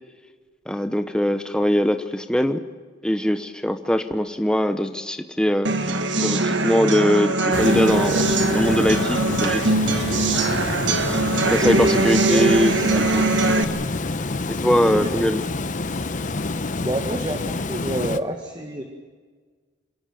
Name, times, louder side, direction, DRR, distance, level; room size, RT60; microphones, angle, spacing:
voice 1, 0.7-2.6 3.0-9.7 11.4-13.2 14.5-15.4, equal, 5° left, 8 dB, 0.9 m, -22 dB
sound 1, 5.7-13.6, right 2 dB, 75° right, 1.7 m, -21 dB
Water, 7.5-18.2, left 3 dB, 45° left, 0.8 m, -27 dB
voice 2, 11.2-11.8 12.3-12.6 12.9-13.1 14.8-15.2 16.8-18.8, right 1 dB, 25° right, 3 dB, 1.8 m, -29 dB
27.5 x 13.5 x 9.1 m, 1.5 s
head